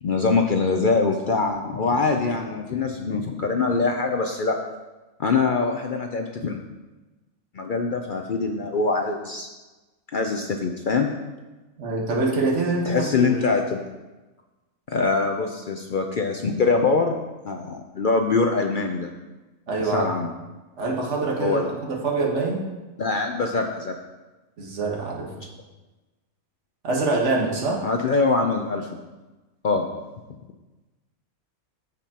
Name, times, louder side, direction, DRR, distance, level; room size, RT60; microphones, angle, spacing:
voice 1, 0.0-4.6 5.2-6.6 7.5-9.5 10.1-11.1 12.9-13.8 14.9-17.2 17.4-19.1 19.8-20.3 21.4-21.7 23.0-24.0 27.8-28.9 29.6-29.9, left 4 dB, 65° left, 3 dB, 0.5 m, -23 dB
voice 2, 11.8-13.3 19.7-20.1 20.8-22.6 24.6-25.3 26.8-27.8, right 3 dB, 55° right, -2 dB, 1.7 m, -25 dB
14.5 x 5.2 x 2.9 m, 1.2 s
omnidirectional pair, 1.5 m